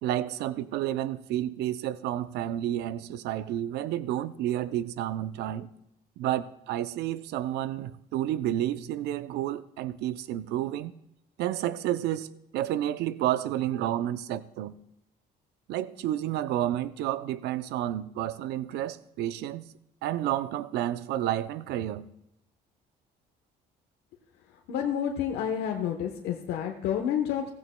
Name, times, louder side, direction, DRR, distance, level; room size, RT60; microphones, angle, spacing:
voice 1, 0.0-5.7 6.2-10.9 11.4-12.3 12.5-14.7 15.7-19.6 20.0-22.1, right 12 dB, 80° right, 0.5 m, -30 dB
voice 2, 24.7-27.5, left 9 dB, 80° left, 1.0 m, -29 dB
15.5 x 15.5 x 2.2 m
cardioid pair, 110°, 17 cm